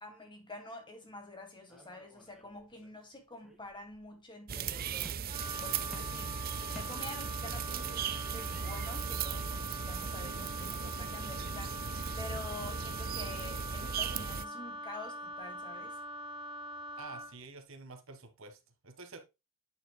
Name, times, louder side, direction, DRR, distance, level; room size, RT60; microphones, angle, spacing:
voice 1, 0.0-6.3 6.7-16.0, left 2 dB, 20° left, 2.2 m, -48 dB
sound 1, 1.7-3.0 3.4-4.1 5.0-5.6 5.9-7.5, equal, ahead, 2.2 m, -55 dB
sound 2, 4.5-14.4, right 7 dB, 40° right, 0.5 m, -37 dB
Wind instrument woodwind instrument, 5.3-17.4, equal, 25° right, 1.1 m, -43 dB
voice 2, 17.0-19.2, right 3 dB, 60° right, 1.4 m, -49 dB
9.0 x 7.1 x 2.2 m
head